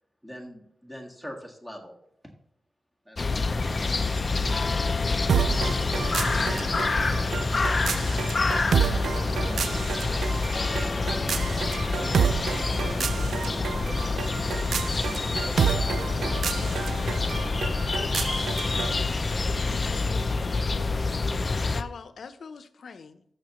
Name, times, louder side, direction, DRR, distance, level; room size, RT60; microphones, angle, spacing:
voice 1, 0.2-2.0 3.1-3.7, equal, 10° right, 1 dB, 1.7 m, -42 dB
sound 1, 3.2-21.8, left 3 dB, 35° left, 0.5 m, -27 dB
voice 2, 3.6-4.7 6.2-6.7 7.0-8.3 8.8-17.3 19.6-20.4, right 1 dB, 60° right, -1 dB, 2.1 m, -43 dB
sound 2, 5.3-19.0, right 7 dB, 85° right, 0.3 m, -30 dB
voice 3, 18.4-19.0 19.9-20.7 21.7-23.2, left 5 dB, 70° left, 11 dB, 0.7 m, -44 dB
14.0 x 6.7 x 3.0 m, 0.74 s
wide cardioid pair, 160°, 0 cm